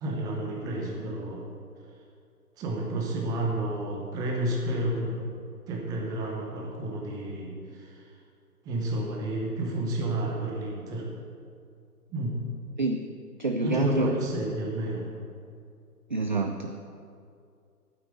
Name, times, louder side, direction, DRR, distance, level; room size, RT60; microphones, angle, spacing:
voice 1, 0.0-1.5 2.6-5.2 5.7-8.1 8.6-11.1 12.1-12.5 13.6-15.1, right 1 dB, 10° right, 0 dB, 0.9 m, -31 dB
voice 2, 13.4-14.1 16.1-16.7, right 3 dB, 35° right, 5 dB, 0.4 m, -27 dB
10.0 x 9.3 x 7.9 m, 2.3 s
figure-of-eight pair, 145°, 47 cm